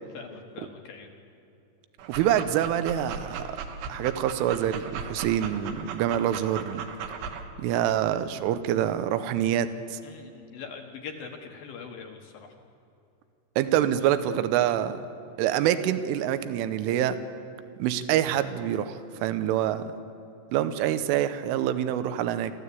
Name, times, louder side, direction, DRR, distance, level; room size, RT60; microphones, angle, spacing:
voice 1, 0.1-1.1 10.0-12.5, left 6 dB, 65° left, 3 dB, 2.4 m, -42 dB
Dog, 2.0-7.4, right 6 dB, 70° right, 3.4 m, -37 dB
voice 2, 2.1-3.5 3.9-6.8 7.6-10.0 13.6-15.0 15.4-17.2 17.8-19.8 20.5-22.5, right 11 dB, 85° right, 11 dB, 3.3 m, -26 dB
24.0 x 14.5 x 8.4 m, 2.8 s
omnidirectional pair, 5.6 m